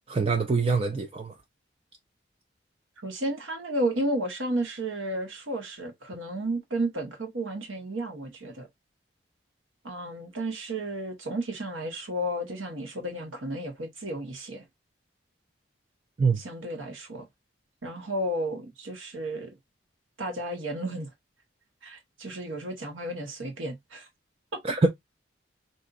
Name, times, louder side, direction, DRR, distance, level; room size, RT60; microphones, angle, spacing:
voice 1, 0.1-1.3 16.2-16.4 24.6-24.9, right 4 dB, 30° right, 0.3 m, -24 dB
voice 2, 3.0-8.7 9.8-14.6 16.4-17.2 17.8-19.5 20.2-21.1 21.8-24.1 24.5-24.6, right 1 dB, 85° right, 1.2 m, -32 dB
3.9 x 2.7 x 2.4 m
head